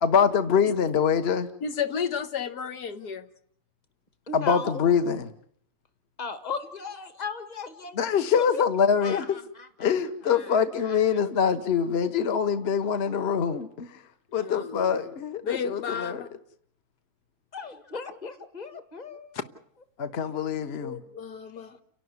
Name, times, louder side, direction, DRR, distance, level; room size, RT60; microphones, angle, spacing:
voice 1, 0.0-1.5 4.3-5.3 8.0-9.2 9.8-14.0 14.3-16.2 20.0-21.0, left 7 dB, 45° left, 1.3 m, -24 dB
voice 2, 1.6-3.3 14.3-15.0 15.4-16.3 20.6-21.8, left 7 dB, 90° left, 1.9 m, -33 dB
voice 3, 4.3-4.8 6.2-8.6 9.0-9.9 10.3-11.0 17.5-19.4, left 5 dB, 25° left, 1.8 m, -37 dB
30.0 x 12.0 x 9.6 m
omnidirectional pair, 1.7 m